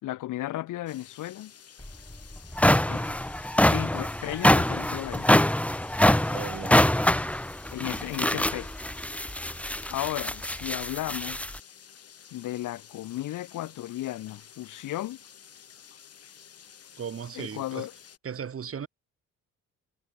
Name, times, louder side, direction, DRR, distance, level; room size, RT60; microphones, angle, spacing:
voice 1, 0.0-1.5 2.9-3.2 3.6-5.5 7.7-8.7 9.9-11.5 12.3-15.2 17.3-17.9, left 15 dB, 85° left, 6.0 m, -35 dB
sound 1, 0.9-18.2, left 8 dB, 55° left, 4.9 m, -52 dB
sound 2, 1.8-1.9 2.4-11.6, left 1 dB, 5° left, 1.6 m, -24 dB
voice 2, 6.3-7.2 17.0-17.9 18.2-18.9, right 7 dB, 45° right, 3.2 m, -37 dB
cardioid pair, 90°, 30 cm